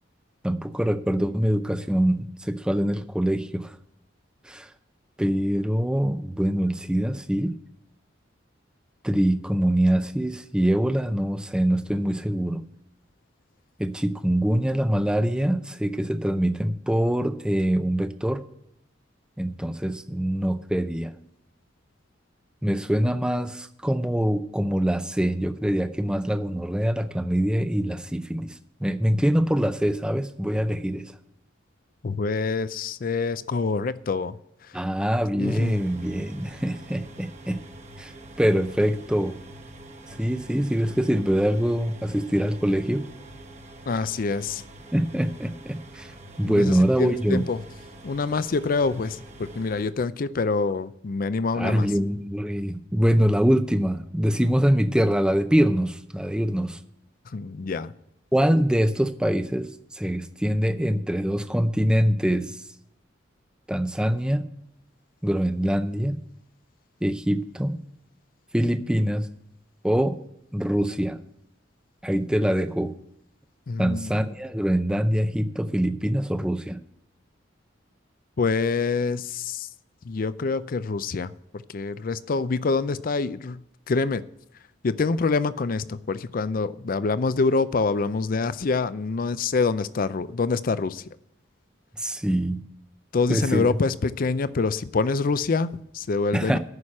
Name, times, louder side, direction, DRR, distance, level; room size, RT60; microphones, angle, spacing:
voice 1, 0.4-3.7 4.4-4.7 5.2-7.5 9.0-12.6 13.8-18.4 19.4-21.1 22.6-28.5 28.8-31.0 34.7-37.6 38.0-38.1 38.4-39.4 40.2-43.1 44.9-46.1 46.4-47.4 51.6-56.8 58.3-62.6 63.7-64.5 65.2-66.2 67.0-67.8 68.5-69.3 69.8-70.2 70.5-71.2 72.0-72.9 73.8-76.8 92.0-92.6 93.3-93.7 96.3-96.6, equal, 5° right, 0.5 m, -24 dB
voice 2, 32.0-34.4 35.4-35.8 43.9-44.6 46.5-47.6 48.0-51.9 57.3-57.9 73.7-74.1 78.4-79.7 80.0-83.6 83.9-84.2 84.8-91.0 93.1-96.6, left 4 dB, 45° left, 0.4 m, -26 dB
sound 1, 35.4-49.9, right 1 dB, 35° right, 1.1 m, -45 dB
9.6 x 6.4 x 8.6 m
head